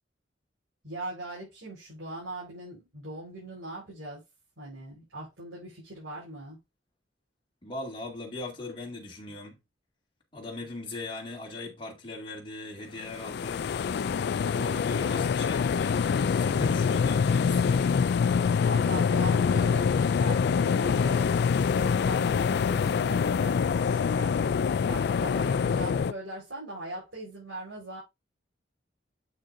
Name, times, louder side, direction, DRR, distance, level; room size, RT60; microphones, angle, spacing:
voice 1, 0.8-4.2 4.6-6.6 14.8-15.3 18.6-24.4 24.8-28.0, right 1 dB, 80° right, 4.6 m, -40 dB
voice 2, 7.6-9.6 10.3-13.6 14.5-17.9, left 2 dB, 25° left, 2.2 m, -39 dB
sound 1, 13.1-26.1, left 6 dB, 60° left, 0.3 m, -25 dB
8.0 x 6.5 x 2.6 m
head